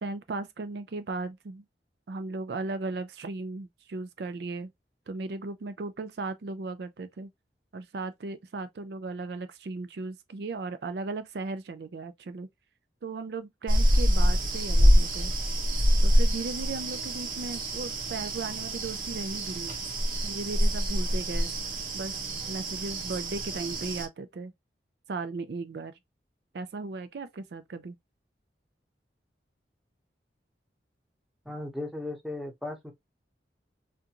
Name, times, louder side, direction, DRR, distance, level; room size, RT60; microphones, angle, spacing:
voice 1, 0.0-1.6 2.1-4.7 5.1-7.3 7.7-12.5 13.0-15.3 16.0-19.7 20.2-21.5 21.9-22.2 22.5-24.5 25.1-25.9 26.5-27.9, right 3 dB, 65° right, 0.4 m, -36 dB
sound 1, 13.7-24.1, equal, 50° right, 0.9 m, -26 dB
voice 2, 31.4-32.9, left 2 dB, ahead, 0.8 m, -36 dB
3.5 x 2.5 x 2.8 m
head